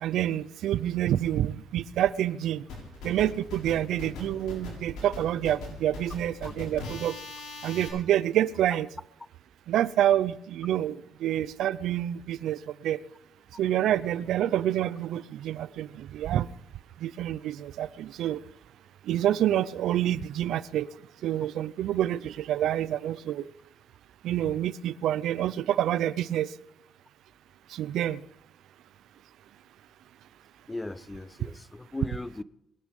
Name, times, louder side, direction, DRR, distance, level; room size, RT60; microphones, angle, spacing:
voice 1, 0.0-2.6 3.0-7.2 7.6-8.9 9.7-13.0 13.6-16.5 17.0-18.4 19.1-20.9 21.2-23.5 24.2-26.5 27.7-28.2, right 11 dB, 80° right, 18 dB, 0.5 m, -27 dB
sound 1, 2.7-7.9, left 3 dB, 90° left, 7.0 m, -40 dB
voice 2, 30.7-32.4, left 2 dB, 15° left, 17 dB, 0.6 m, -37 dB
21.5 x 9.5 x 5.3 m, 0.84 s
cardioid pair, 90°, 0 cm